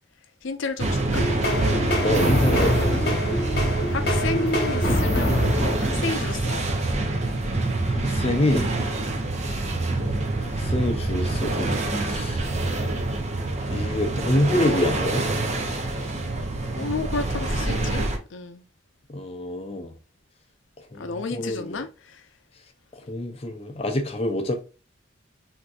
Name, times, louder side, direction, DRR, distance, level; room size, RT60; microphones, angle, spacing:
voice 1, 0.4-1.2 3.9-6.6 16.8-18.6 21.0-22.2, left 4 dB, 85° left, 0.5 m, -31 dB
sound 1, 0.8-18.2, right 2 dB, 35° right, 0.5 m, -26 dB
sound 2, 1.1-6.6, equal, 50° left, 1.1 m, -25 dB
voice 2, 2.0-3.2 7.9-8.7 10.4-11.8 12.1-12.4 13.7-15.3 19.1-19.9 20.9-21.8 22.9-24.6, left 1 dB, 30° left, 0.5 m, -26 dB
3.5 x 2.6 x 2.4 m
head